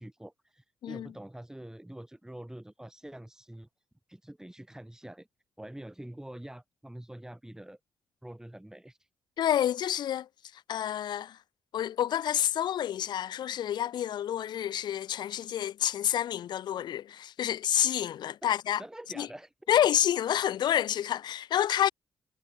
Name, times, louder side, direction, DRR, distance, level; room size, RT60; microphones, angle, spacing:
voice 1, 0.0-3.7 4.1-5.3 5.6-7.8 8.2-9.1 18.4-18.5 18.8-19.5, right 1 dB, 5° right, 2.4 m, -45 dB
voice 2, 9.4-10.3 10.7-11.4 11.7-18.8 19.2-19.3 19.7-21.9, left 10 dB, 70° left, 0.5 m, -28 dB
supercardioid pair, 55°, 8 cm